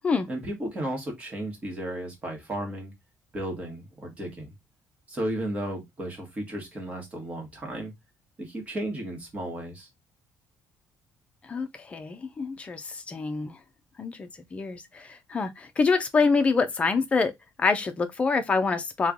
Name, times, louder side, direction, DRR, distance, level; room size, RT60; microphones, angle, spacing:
voice 1, 0.3-2.9 3.3-4.5 5.1-7.9 8.4-9.9, right 1 dB, 25° right, 1.2 m, -34 dB
voice 2, 11.4-13.6 14.0-17.3 17.6-19.1, left 4 dB, 20° left, 0.5 m, -26 dB
3.2 x 2.2 x 3.6 m
cardioid pair, 165°, 6 cm